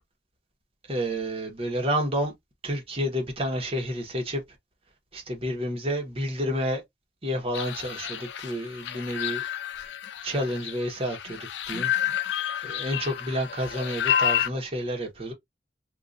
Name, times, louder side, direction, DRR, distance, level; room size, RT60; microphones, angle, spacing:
voice 1, 0.9-2.3 2.6-4.4 5.1-6.8 7.2-9.4 10.2-11.9 12.6-15.3, equal, 35° right, 1.1 m, -30 dB
sound 1, 7.5-14.5, left 10 dB, 70° left, 0.4 m, -30 dB
3.7 x 2.5 x 2.6 m
head